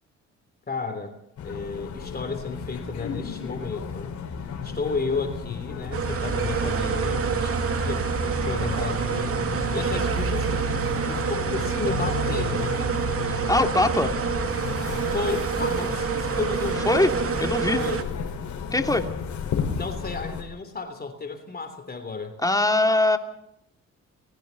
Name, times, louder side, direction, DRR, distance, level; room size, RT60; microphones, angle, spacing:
voice 1, 0.7-1.1 1.4-4.1 4.6-8.0 8.4-9.4 9.7-12.8 15.1-16.9 17.7-18.0 19.7-22.3, left 4 dB, 30° left, 7 dB, 3.2 m, -32 dB
sound 1, 1.4-20.4, left 6 dB, 65° left, 5.1 m, -33 dB
sound 2, 5.9-18.0, right 6 dB, 50° right, 2.5 m, -27 dB
voice 2, 13.3-14.1 16.9-17.1 17.4-17.8 18.7-19.1 22.4-23.2, left 2 dB, 10° left, 5 dB, 2.8 m, -21 dB
30.0 x 21.5 x 4.1 m, 0.77 s
cardioid pair, 90°, 30 cm